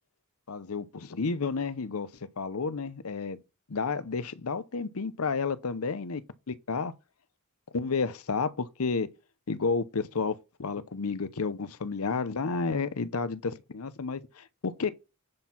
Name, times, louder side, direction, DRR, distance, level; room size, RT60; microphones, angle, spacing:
voice 1, 0.5-2.1 2.4-3.4 3.7-6.2 6.5-6.9 7.7-9.1 9.5-14.9, left 4 dB, 80° left, 0.7 m, -31 dB
9.6 x 4.5 x 5.8 m
head